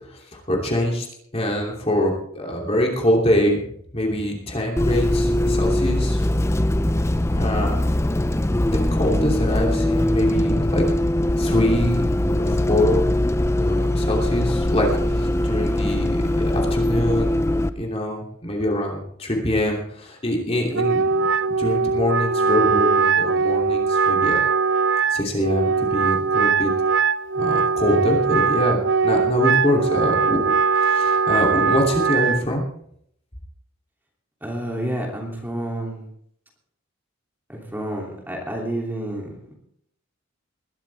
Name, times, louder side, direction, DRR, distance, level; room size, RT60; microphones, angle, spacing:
voice 1, 0.1-1.1 1.3-3.6 3.9-6.2 7.3-7.8 8.5-10.8 11.3-12.1 12.4-13.1 13.5-17.4 17.8-24.4 25.1-26.7 27.4-30.4 30.7-32.7, left 1 dB, 30° left, 0 dB, 3.0 m, -24 dB
Bus, 4.8-17.7, left 1 dB, 15° left, 0.5 m, -21 dB
Wind instrument woodwind instrument, 20.7-32.4, right 5 dB, 55° right, 0.5 m, -20 dB
voice 2, 34.4-36.0 37.5-39.6, right 1 dB, 10° right, -1 dB, 2.9 m, -29 dB
20.5 x 13.0 x 3.5 m, 0.68 s
head